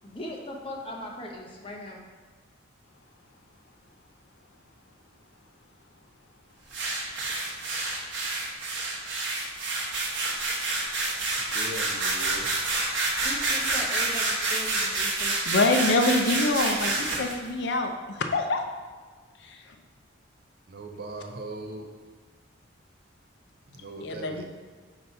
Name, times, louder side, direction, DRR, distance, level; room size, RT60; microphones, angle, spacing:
voice 1, 0.0-2.0 13.2-15.4, left 1 dB, 25° left, -1 dB, 0.8 m, -39 dB
sound 1, 6.7-17.4, right 2 dB, 70° right, 1.0 m, -28 dB
voice 2, 11.5-12.5 20.7-21.9 23.7-24.4, right 1 dB, 50° right, 4 dB, 0.6 m, -39 dB
voice 3, 15.5-18.6 19.4-19.6 24.0-24.4, left 2 dB, 60° left, 5 dB, 0.5 m, -25 dB
4.5 x 4.0 x 5.4 m, 1.5 s
head